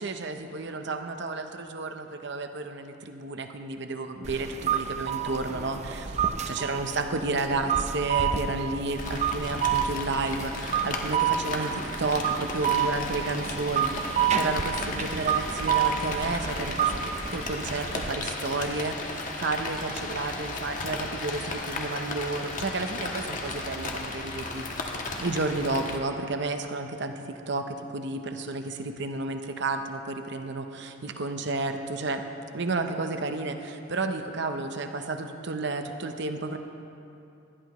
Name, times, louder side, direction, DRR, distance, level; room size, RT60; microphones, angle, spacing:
voice 1, 0.0-6.2 6.5-17.0 17.3-32.2 32.5-36.6, right 3 dB, 60° right, 6 dB, 0.8 m, -32 dB
sound 1, 4.2-18.2, right 8 dB, 35° right, 0.6 m, -29 dB
Rain, 9.0-26.0, left 2 dB, 40° left, 1.3 m, -35 dB
19.5 x 13.0 x 3.1 m, 2.8 s
head